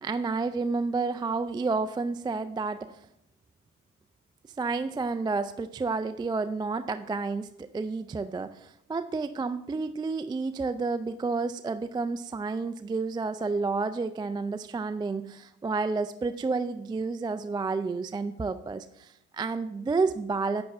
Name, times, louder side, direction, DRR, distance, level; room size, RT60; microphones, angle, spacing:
voice 1, 0.0-2.9 4.6-20.6, right 4 dB, 10° right, 11 dB, 0.3 m, -30 dB
11.0 x 7.8 x 3.5 m, 0.79 s
hypercardioid pair, 45°, 43 cm